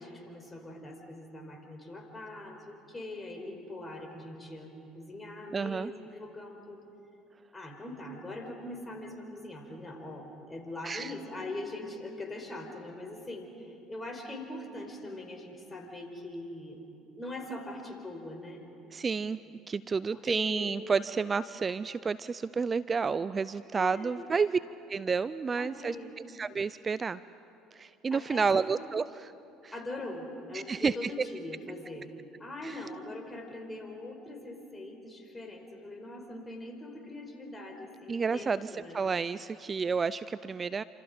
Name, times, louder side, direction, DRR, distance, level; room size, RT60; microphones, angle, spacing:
voice 1, 0.0-6.8 7.5-16.8 17.2-18.6 20.1-20.7 23.7-24.4 25.5-26.1 28.1-28.6 29.7-32.1 32.4-39.0, left 1 dB, 20° left, 3 dB, 4.8 m, -42 dB
voice 2, 5.5-5.9 10.8-11.1 18.9-19.4 19.7-24.6 24.9-26.0 26.3-27.2 27.7-29.3 29.6-29.7 30.5-31.3 32.6-32.8 38.1-40.8, right 5 dB, 30° right, 16 dB, 0.5 m, -30 dB
28.0 x 27.0 x 5.2 m, 2.7 s
hypercardioid pair, 65°, 0 cm